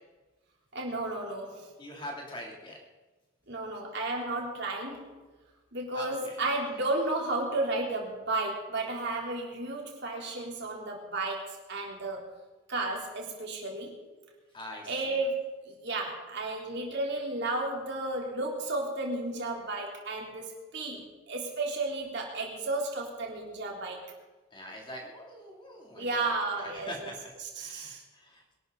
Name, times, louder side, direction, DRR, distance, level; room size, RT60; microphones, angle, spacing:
voice 1, 0.7-1.7 3.5-5.2 5.7-12.2 12.7-14.0 14.9-24.0 25.9-27.1 27.4-28.0, right 2 dB, 55° right, -1 dB, 3.5 m, -33 dB
voice 2, 1.8-2.8 5.9-6.3 14.5-15.2 24.5-28.4, equal, 25° left, -1 dB, 3.0 m, -43 dB
23.0 x 12.5 x 4.1 m, 1.2 s
head